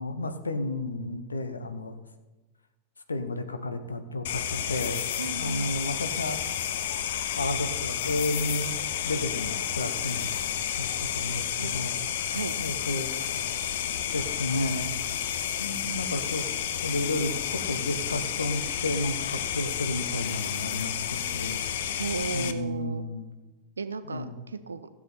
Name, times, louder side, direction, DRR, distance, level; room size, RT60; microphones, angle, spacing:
voice 1, 0.0-1.9 3.1-5.0 5.4-6.4 7.3-8.8 9.0-10.3 10.8-12.1 12.6-13.1 14.1-14.9 15.6-16.4 16.8-21.6 22.3-23.3 24.0-24.4, left 2 dB, 75° left, 8 dB, 1.0 m, -32 dB
sound 1, 4.2-22.5, left 9 dB, 55° left, 0.7 m, -31 dB
voice 2, 5.2-5.8 11.6-12.6 22.0-23.0 23.8-24.9, right 4 dB, 75° right, 11 dB, 0.8 m, -35 dB
15.5 x 7.5 x 4.3 m, 1.2 s
figure-of-eight pair, 90°, 0 cm